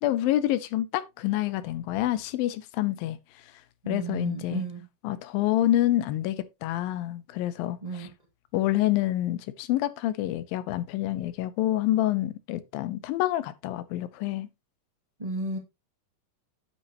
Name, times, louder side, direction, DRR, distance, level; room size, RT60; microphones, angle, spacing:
voice 1, 0.0-3.2 3.9-4.6 5.0-8.1 8.5-14.5, left 14 dB, 90° left, 2.5 m, -27 dB
voice 2, 3.8-4.8 7.8-8.1 15.2-15.6, right 3 dB, 20° right, 0.9 m, -33 dB
8.4 x 8.3 x 2.9 m
omnidirectional pair, 4.0 m